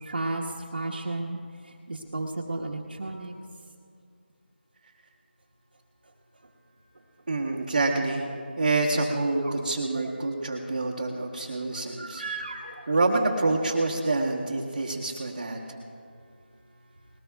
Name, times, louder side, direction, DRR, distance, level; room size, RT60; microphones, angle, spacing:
voice 1, 0.0-0.4 0.7-1.4 1.9-3.3 9.4-9.5 9.9-10.1 12.0-12.7, right 2 dB, 60° right, -4 dB, 1.3 m, -33 dB
voice 2, 7.3-8.2 8.6-12.2 12.9-15.6, right 2 dB, 35° right, -5 dB, 1.3 m, -27 dB
20.5 x 19.0 x 2.3 m, 2.3 s
figure-of-eight pair, 170°, 6 cm